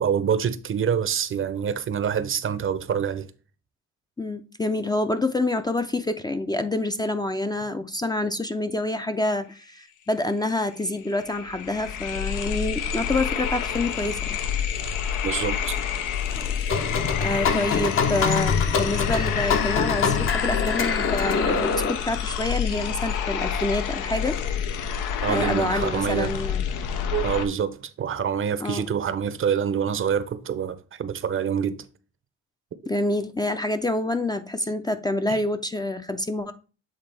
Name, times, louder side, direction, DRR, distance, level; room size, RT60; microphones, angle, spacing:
voice 1, 0.0-3.3 15.2-15.8 25.2-26.4 27.1-31.8 35.3-35.4, right 7 dB, 45° right, 0.6 m, -26 dB
voice 2, 4.2-14.4 16.4-16.7 17.2-24.4 25.3-26.6 28.6-28.8 32.9-36.5, left 2 dB, 15° left, 0.4 m, -27 dB
sound 1, 10.4-10.5 10.8-27.5, left 8 dB, 90° left, 0.7 m, -28 dB
sound 2, 16.7-21.9, left 5 dB, 45° left, 0.7 m, -25 dB
7.9 x 3.6 x 3.3 m
cardioid pair, 90°, 30 cm